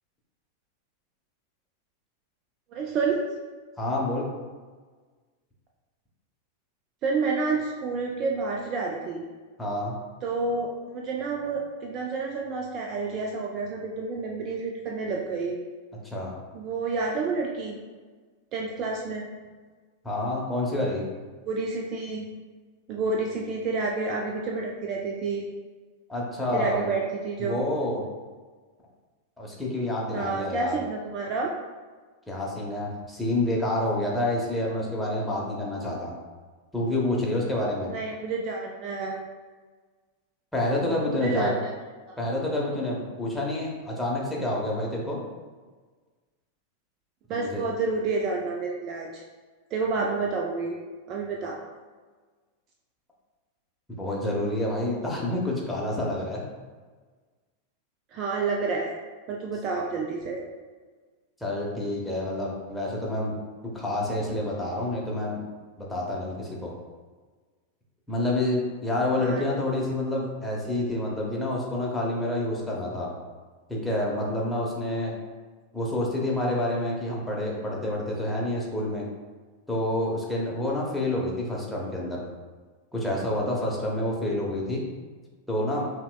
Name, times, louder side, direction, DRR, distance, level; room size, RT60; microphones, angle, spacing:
voice 1, 2.7-3.2 7.0-9.3 10.2-15.6 16.5-17.8 18.5-19.3 21.5-22.3 22.9-25.5 26.5-27.6 30.1-31.5 37.9-39.2 41.1-41.7 42.1-42.2 47.3-49.2 49.7-50.8 51.1-51.6 58.1-58.9 59.3-60.4 69.2-69.4, right 4 dB, 35° right, -1 dB, 0.4 m, -29 dB
voice 2, 3.8-4.3 9.6-10.0 16.0-16.3 20.0-21.0 26.1-26.9 27.4-28.0 29.4-30.8 32.3-36.1 36.7-37.9 40.5-41.5 42.2-45.2 47.3-47.6 53.9-56.5 61.4-63.4 63.7-65.4 65.8-66.7 68.1-73.1 73.7-75.1 75.7-79.1 79.7-82.2 82.9-84.8 85.5-85.9, left 1 dB, 5° left, -4 dB, 0.8 m, -28 dB
5.6 x 2.1 x 2.2 m, 1.4 s
figure-of-eight pair, 90°, 0 cm